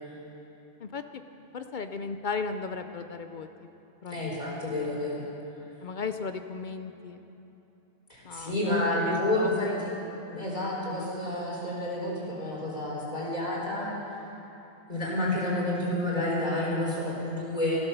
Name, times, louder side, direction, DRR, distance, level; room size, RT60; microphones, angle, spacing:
voice 1, 0.8-1.2 1.5-3.7 4.0-4.5 5.8-7.2 8.2-9.8, left 4 dB, 55° left, 8 dB, 0.6 m, -36 dB
voice 2, 4.1-5.2 8.1-9.9 10.3-13.9 14.9-17.8, left 1 dB, 40° left, -5 dB, 4.2 m, -29 dB
16.0 x 11.5 x 6.8 m, 3.0 s
omnidirectional pair, 1.1 m